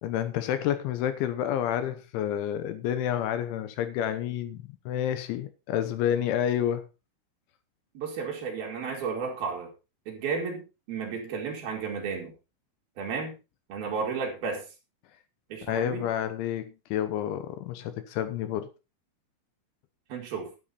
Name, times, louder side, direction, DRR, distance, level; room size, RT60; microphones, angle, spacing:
voice 1, 0.0-6.9 15.7-18.7, left 10 dB, 75° left, 3.3 m, -29 dB
voice 2, 7.9-9.7 10.1-12.3 13.0-13.4 13.7-14.6 15.5-16.1 20.1-20.5, right 5 dB, 55° right, 4.3 m, -33 dB
11.0 x 11.0 x 4.2 m
omnidirectional pair, 5.6 m